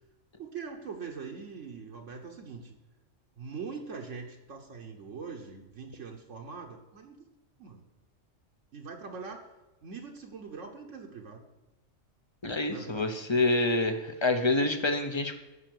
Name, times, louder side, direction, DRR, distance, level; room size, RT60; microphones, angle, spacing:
voice 1, 0.4-2.7 3.4-7.2 7.6-7.8 8.7-9.5 9.8-11.4 12.7-13.1, right 5 dB, 75° right, 1 dB, 1.3 m, -42 dB
voice 2, 12.4-15.4, left 2 dB, 25° left, 7 dB, 0.7 m, -27 dB
9.8 x 5.7 x 7.7 m, 1.1 s
omnidirectional pair, 1.3 m